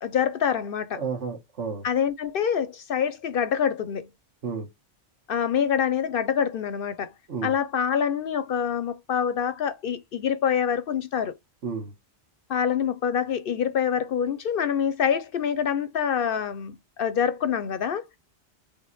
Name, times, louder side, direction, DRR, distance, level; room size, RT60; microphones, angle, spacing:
voice 1, 0.0-1.0 1.8-4.1 5.3-7.1 7.4-11.3 12.5-18.0, left 8 dB, 60° left, 0.7 m, -26 dB
voice 2, 0.9-1.8 4.4-4.7 7.3-7.5 11.6-11.9, right 5 dB, 85° right, 1.6 m, -31 dB
3.7 x 3.5 x 4.0 m
omnidirectional pair, 1.2 m